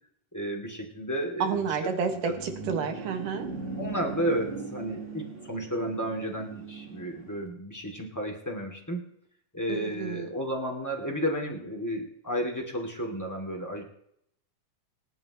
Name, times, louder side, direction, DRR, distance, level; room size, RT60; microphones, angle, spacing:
voice 1, 0.3-1.7 2.2-2.3 3.8-9.1 9.5-13.8, equal, 5° left, 1 dB, 1.6 m, -32 dB
voice 2, 1.4-3.5 9.7-10.3, right 6 dB, 75° right, 5 dB, 3.1 m, -30 dB
sound 1, 1.9-7.5, right 4 dB, 45° right, 0.7 m, -39 dB
27.0 x 11.0 x 3.0 m, 0.72 s
omnidirectional pair, 3.9 m